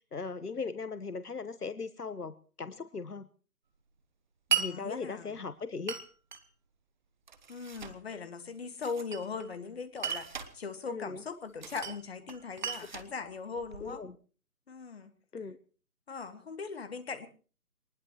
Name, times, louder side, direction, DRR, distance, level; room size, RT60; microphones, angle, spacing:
voice 1, 0.1-3.3 4.6-5.9 10.9-11.2 13.8-14.1 15.3-15.6, left 4 dB, 80° left, 13 dB, 1.2 m, -38 dB
voice 2, 4.5-5.5 7.5-14.1 14.7-15.1 16.1-17.3, left 5 dB, 40° left, 9 dB, 2.0 m, -40 dB
Glass, 4.5-4.7 5.9-6.4 7.3-8.0 8.8-9.5 10.0-10.5 11.6-12.0 12.3-13.9, right 6 dB, 30° right, 1.2 m, -35 dB
23.5 x 19.5 x 3.1 m, 0.39 s
figure-of-eight pair, 150°, 45 cm